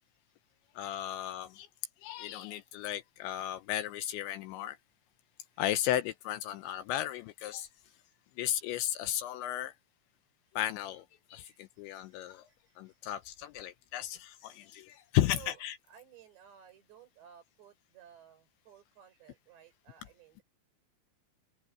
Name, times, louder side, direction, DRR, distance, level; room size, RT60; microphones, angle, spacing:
voice 1, 0.8-1.7 2.0-4.8 5.6-7.7 8.4-9.7 10.6-12.5 12.8-15.8, left 13 dB, 80° left, 2.8 m, -34 dB
voice 2, 11.4-13.1 14.5-14.6 14.9-15.0 15.3-15.6 15.9-20.4, right 10 dB, 60° right, 6.9 m, -57 dB
open air
omnidirectional pair, 5.9 m